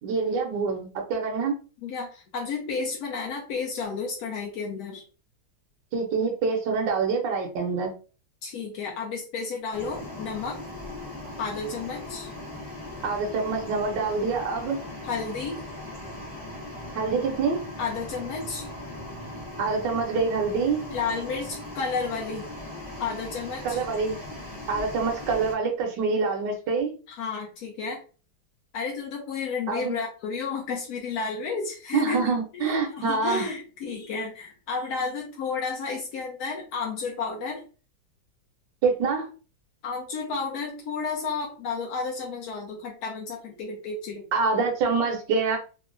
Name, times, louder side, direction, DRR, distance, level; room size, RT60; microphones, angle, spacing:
voice 1, 0.0-1.5 5.9-7.9 13.0-14.8 16.9-17.6 19.6-20.8 23.6-24.2 24.7-26.9 29.7-29.9 31.9-33.5 38.8-39.3 44.3-45.6, right 4 dB, 70° right, 1 dB, 1.2 m, -26 dB
voice 2, 1.8-5.0 8.4-10.6 11.4-12.3 15.0-15.6 17.8-18.7 20.9-22.5 23.0-23.8 27.1-28.0 28.7-37.6 39.8-44.3, left 4 dB, 70° left, -1 dB, 0.9 m, -32 dB
sound 1, 9.7-25.5, left 1 dB, 40° left, 0.5 m, -39 dB
3.6 x 2.0 x 2.4 m, 0.36 s
omnidirectional pair, 2.2 m